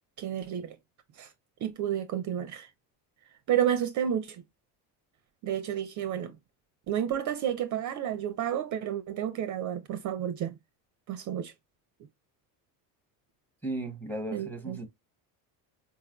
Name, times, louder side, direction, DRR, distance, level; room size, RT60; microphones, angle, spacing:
voice 1, 0.2-0.8 1.1-1.3 1.6-2.7 3.5-4.4 5.4-6.4 6.9-10.6 11.1-11.5 14.3-14.9, right 10 dB, 45° right, 0.4 m, -31 dB
voice 2, 13.6-14.9, right 2 dB, 5° left, 0.7 m, -35 dB
4.2 x 2.4 x 2.2 m
supercardioid pair, 95°, 44 cm